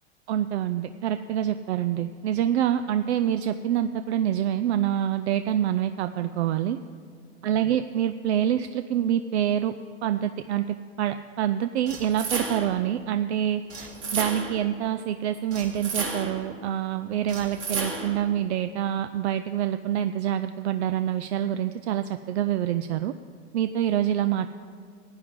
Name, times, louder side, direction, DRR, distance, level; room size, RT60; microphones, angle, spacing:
voice 1, 0.3-6.8 7.4-9.7 10.0-23.1 23.5-24.5, right 10 dB, 75° right, 10 dB, 0.5 m, -26 dB
sound 1, 11.9-12.8 13.7-14.7 15.5-16.5 17.3-18.3, right 4 dB, 35° right, 2.0 m, -33 dB
16.0 x 9.7 x 3.7 m, 2.2 s
hypercardioid pair, 105°, 33 cm